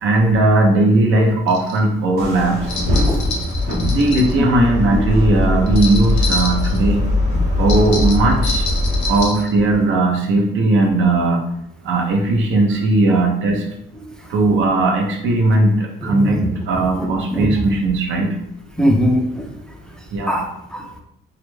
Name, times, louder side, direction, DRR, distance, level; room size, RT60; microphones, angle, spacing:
voice 1, 0.0-2.8 3.7-7.1 7.6-8.7 9.1-11.4 11.8-13.6 14.3-18.3 20.1-20.4, right 2 dB, 75° right, 1 dB, 0.6 m, -17 dB
sound 1, 1.5-1.8 2.7-4.3 5.7-6.8 7.7-9.5, left 2 dB, 70° left, 0.6 m, -27 dB
sound 2, 2.2-9.2, left 2 dB, 55° right, 1.0 m, -20 dB
voice 2, 16.0-16.5 17.0-17.5 18.8-19.5 20.3-21.0, left 1 dB, 5° left, 2 dB, 0.4 m, -20 dB
2.4 x 2.1 x 3.1 m, 0.78 s
cardioid pair, 90°, 20 cm